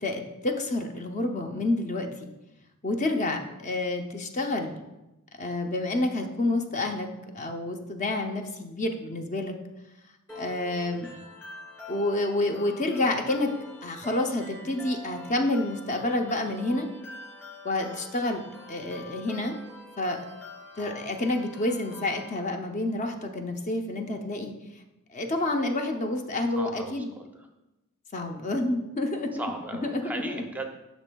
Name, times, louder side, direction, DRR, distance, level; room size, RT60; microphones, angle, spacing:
voice 1, 0.0-2.3 2.8-4.8 5.4-7.1 7.3-9.5 10.4-11.1 11.9-13.5 13.8-16.9 17.6-18.4 18.7-19.6 20.0-20.2 20.8-24.5 25.1-27.1 28.1-29.3 29.8-30.3, left 2 dB, 35° left, 4 dB, 0.6 m, -29 dB
sound 1, 10.3-22.3, left 2 dB, 10° left, 2.5 m, -45 dB
voice 2, 10.9-11.4 20.8-21.0 26.5-27.5 28.2-28.3 29.3-30.7, right 2 dB, 10° right, 3 dB, 0.6 m, -38 dB
11.0 x 6.1 x 2.3 m, 0.97 s
head